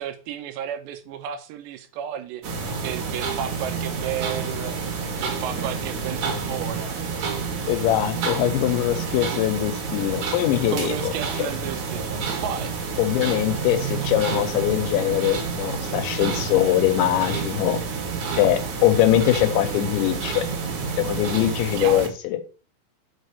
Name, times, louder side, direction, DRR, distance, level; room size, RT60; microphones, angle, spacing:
voice 1, 0.0-7.0 10.7-12.7 21.8-22.1, right 9 dB, 80° right, 2.7 m, -33 dB
sound 1, 2.4-22.1, right 5 dB, 55° right, 2.2 m, -29 dB
voice 2, 7.7-11.1 13.0-17.8 18.3-20.5 21.0-22.4, left 13 dB, 80° left, 3.0 m, -22 dB
5.6 x 5.2 x 6.6 m
omnidirectional pair, 5.4 m